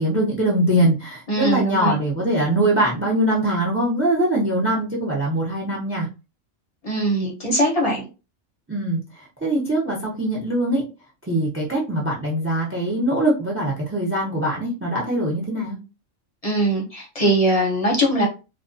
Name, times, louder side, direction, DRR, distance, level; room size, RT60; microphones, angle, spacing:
voice 1, 0.0-6.1 8.7-10.8 11.3-15.8, right 1 dB, 20° right, -2 dB, 0.3 m, -22 dB
voice 2, 1.3-2.0 6.8-8.0 16.4-18.3, right 1 dB, 40° left, -1 dB, 0.6 m, -21 dB
2.3 x 2.2 x 2.5 m, 0.30 s
omnidirectional pair, 1.3 m